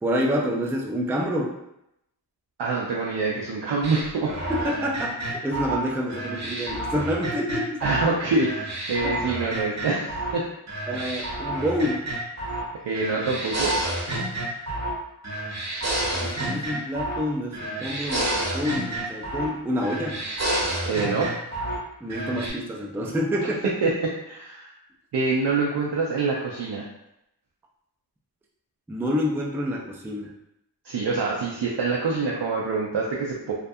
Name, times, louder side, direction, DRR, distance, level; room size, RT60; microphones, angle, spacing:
voice 1, 0.0-1.5 4.5-7.8 9.0-9.2 10.9-12.1 16.2-20.2 22.0-23.9 28.9-30.3, equal, 5° right, -1 dB, 0.3 m, -28 dB
voice 2, 2.6-4.4 7.8-10.5 12.8-13.7 20.9-21.3 23.6-23.9 24.3-24.7 25.1-26.8 30.8-33.5, right 3 dB, 70° right, -3 dB, 0.5 m, -25 dB
sound 1, 3.8-8.1 8.4-10.4 10.7-12.7 13.0-15.0 15.2-17.3 17.5-19.5 19.8-21.8 22.1-22.5, right 1 dB, 40° right, 0.8 m, -30 dB
2.4 x 2.2 x 2.6 m, 0.82 s
wide cardioid pair, 65°, 42 cm